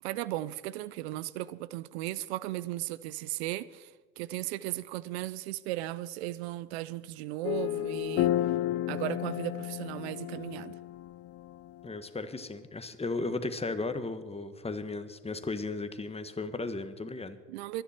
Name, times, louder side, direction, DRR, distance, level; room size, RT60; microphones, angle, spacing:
voice 1, 0.0-8.3 8.9-10.8 17.5-17.8, right 15 dB, 90° right, 0.5 m, -36 dB
sound 1, 7.4-11.9, left 13 dB, 50° left, 0.5 m, -32 dB
voice 2, 11.8-17.4, left 3 dB, 20° left, 1.5 m, -35 dB
24.0 x 10.0 x 4.4 m
supercardioid pair, 70°, 31 cm